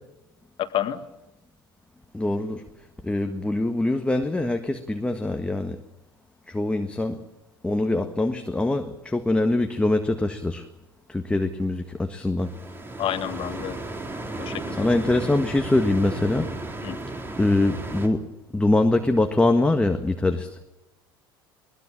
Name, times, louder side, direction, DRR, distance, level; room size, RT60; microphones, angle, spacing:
voice 1, 0.6-1.0 13.0-13.8 14.4-14.9 16.8-17.0, left 11 dB, 45° left, 11 dB, 1.8 m, -29 dB
voice 2, 2.1-2.7 3.0-5.8 6.5-7.2 7.6-10.6 11.1-12.5 14.7-16.5 17.4-18.3 18.5-20.5, left 2 dB, 10° left, 6 dB, 1.6 m, -23 dB
sound 1, 12.4-18.1, right 2 dB, 15° right, 3.6 m, -34 dB
22.0 x 20.5 x 7.4 m, 0.98 s
hypercardioid pair, 70°, 12 cm